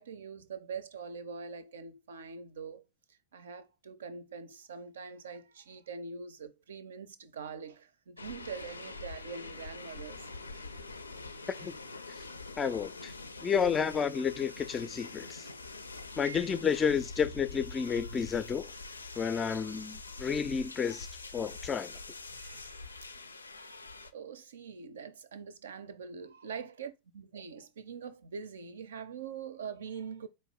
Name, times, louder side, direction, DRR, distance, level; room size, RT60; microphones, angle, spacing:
voice 1, 0.0-2.8 3.3-10.3 10.5-10.7 12.6-12.7 16.2-16.5 21.4-21.6 22.3-22.9 24.1-30.3, right 6 dB, 65° right, 0.5 m, -44 dB
sound 1, 8.2-24.1, left 3 dB, 80° left, 0.4 m, -45 dB
voice 2, 12.6-13.1 13.4-15.5 16.2-18.7 19.2-21.1 21.3-21.9, left 6 dB, 20° left, 0.4 m, -31 dB
4.5 x 2.6 x 3.5 m
figure-of-eight pair, 90°, 0 cm